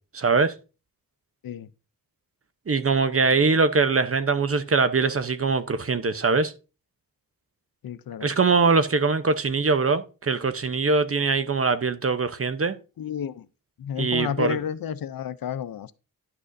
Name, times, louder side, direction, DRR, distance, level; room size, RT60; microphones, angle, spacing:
voice 1, 0.1-0.5 2.7-6.5 8.2-12.8 14.0-14.6, right 4 dB, 40° right, 0.8 m, -22 dB
voice 2, 7.8-8.3 13.0-13.5 13.8-15.9, left 8 dB, 70° left, 0.6 m, -31 dB
11.0 x 6.2 x 2.6 m
cardioid pair, 45°, 36 cm